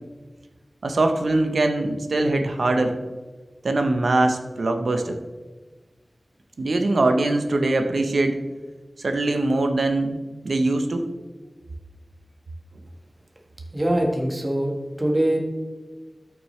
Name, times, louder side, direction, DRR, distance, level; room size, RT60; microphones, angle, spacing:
voice 1, 0.8-3.0 3.6-5.2 6.6-8.4 9.0-10.2 10.4-11.1, right 2 dB, 80° right, 6 dB, 0.8 m, -22 dB
voice 2, 13.7-15.4, right 1 dB, 30° right, 0 dB, 1.5 m, -23 dB
13.0 x 5.9 x 3.3 m, 1.3 s
wide cardioid pair, 80°, 0 cm